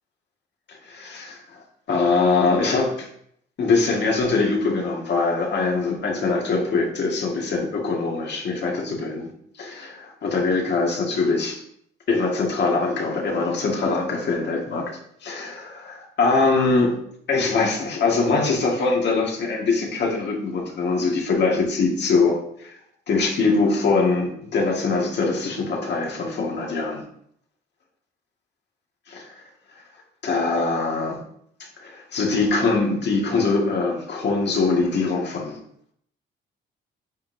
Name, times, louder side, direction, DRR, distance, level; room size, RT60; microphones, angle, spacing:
voice 1, 0.7-1.4 1.9-3.1 3.6-9.3 9.6-11.6 12.1-17.0 17.3-22.7 23.1-27.0 29.1-29.3 30.2-31.2 31.6-35.6, left 3 dB, 60° left, 0 dB, 1.8 m, -23 dB
8.5 x 5.4 x 2.7 m, 0.69 s
cardioid pair, 90°, 20 cm